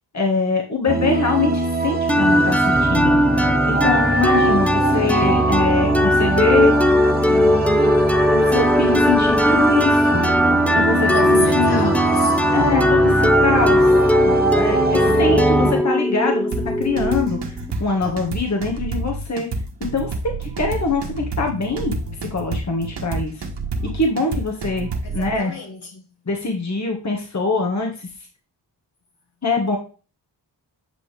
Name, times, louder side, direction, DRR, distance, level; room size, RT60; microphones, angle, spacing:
voice 1, 0.1-3.2 3.7-6.7 7.3-7.9 8.3-10.3 10.7-11.9 12.5-13.9 14.2-16.5 16.8-19.5 19.9-21.9 22.3-23.5 23.9-24.9 25.1-25.5 26.3-28.1 29.4-29.8, left 3 dB, 40° left, 1.8 m, -23 dB
sound 1, 0.9-15.7, right 3 dB, 20° right, 1.0 m, -23 dB
sound 2, 2.1-17.7, left 1 dB, 5° left, 0.6 m, -18 dB
voice 2, 11.1-12.4 25.0-26.0, left 2 dB, 65° left, 2.4 m, -32 dB
sound 3, 16.5-25.3, right 3 dB, 70° right, 1.6 m, -29 dB
9.4 x 5.5 x 3.5 m
cardioid pair, 75°, 42 cm